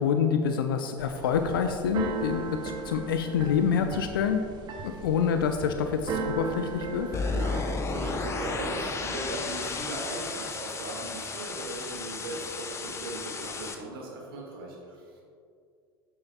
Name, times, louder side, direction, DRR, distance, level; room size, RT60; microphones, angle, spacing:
voice 1, 0.0-4.4 4.8-7.1, left 7 dB, 65° left, 7 dB, 0.4 m, -27 dB
Keyboard (musical), 1.0-7.7, right 4 dB, 35° right, 0.7 m, -37 dB
sound 1, 7.1-13.8, left 4 dB, 20° left, 0.6 m, -33 dB
voice 2, 7.1-15.2, right 2 dB, 65° right, -1 dB, 1.7 m, -38 dB
8.5 x 8.0 x 2.3 m, 2.3 s
figure-of-eight pair, 75°, 13 cm